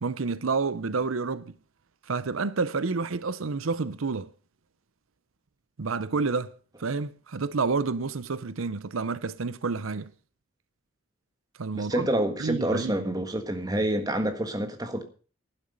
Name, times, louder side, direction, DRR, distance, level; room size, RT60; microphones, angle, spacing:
voice 1, 0.0-1.5 2.1-4.3 5.8-6.5 6.8-10.1 11.6-12.1 12.4-12.9, right 4 dB, 85° right, 0.7 m, -29 dB
voice 2, 11.7-15.1, right 1 dB, 20° right, 1.5 m, -28 dB
12.0 x 11.5 x 5.4 m
head